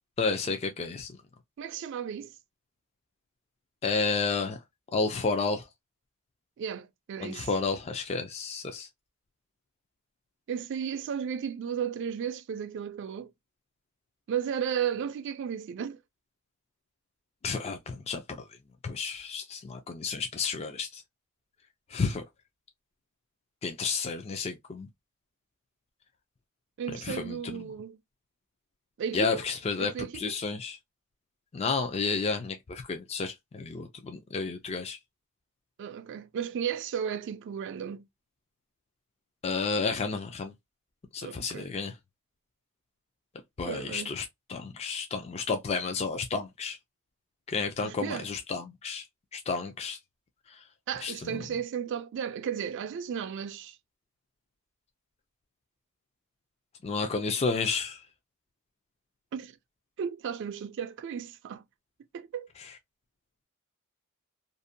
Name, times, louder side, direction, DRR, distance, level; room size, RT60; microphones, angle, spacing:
voice 1, 0.2-1.1 3.8-4.6 4.9-5.7 7.2-8.9 17.4-18.6 18.8-21.0 21.9-22.2 23.6-24.9 27.0-27.6 29.1-30.8 31.5-35.0 39.4-40.5 41.1-42.0 43.6-46.8 47.5-49.1 49.3-50.0 50.5-50.6 51.0-51.4 56.8-58.0 62.6-62.7, left 4 dB, 30° left, 0.3 m, -31 dB
voice 2, 1.6-2.3 6.6-7.5 10.5-13.3 14.3-16.0 26.8-28.0 29.0-29.4 29.8-30.4 35.8-38.1 41.2-41.7 43.6-44.1 47.8-48.3 50.9-53.8 59.3-59.6 60.0-61.6 62.1-62.5, right 8 dB, 55° right, 0.3 m, -34 dB
2.6 x 2.1 x 2.5 m
head